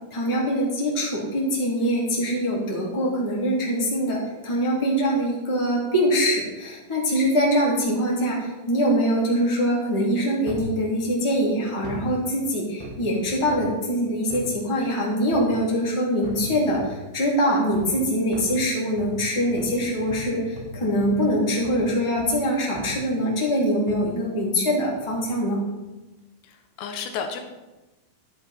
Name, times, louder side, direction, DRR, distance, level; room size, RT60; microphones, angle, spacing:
voice 1, 0.1-25.6, equal, 5° left, -5 dB, 2.7 m, -23 dB
sound 1, 10.5-10.8 11.8-12.1 12.8-13.8 14.3-14.5 15.3-15.7 16.2-17.0 17.7-18.0 18.3-21.9 22.2-22.4 22.8-23.1 23.9-24.1 24.9-25.3 25.9-26.0, equal, 65° right, 4.2 m, -38 dB
voice 2, 26.4-27.4, left 6 dB, 70° left, 5 dB, 3.2 m, -32 dB
12.5 x 11.5 x 4.5 m, 1.1 s
omnidirectional pair, 5.8 m